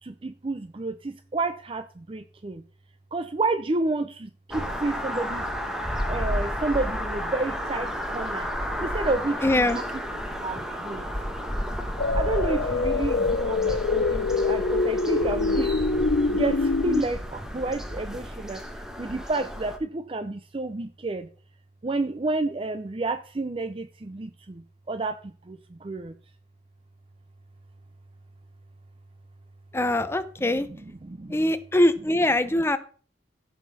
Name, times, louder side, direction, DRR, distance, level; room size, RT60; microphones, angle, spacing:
voice 1, 0.0-2.6 3.1-5.5 6.0-8.5 8.8-9.4 9.7-9.8 10.4-11.1 12.1-15.7 16.3-18.6 19.0-21.3 21.8-26.1 31.1-31.3, right 2 dB, 30° right, 10 dB, 0.5 m, -30 dB
sound 1, 4.5-19.8, equal, 5° right, 1.1 m, -32 dB
voice 2, 9.4-9.8 29.7-30.7 31.3-32.8, left 1 dB, 15° left, 12 dB, 0.6 m, -22 dB
sound 2, 12.0-17.0, left 3 dB, 70° left, 0.6 m, -25 dB
15.5 x 5.8 x 4.1 m, 0.42 s
head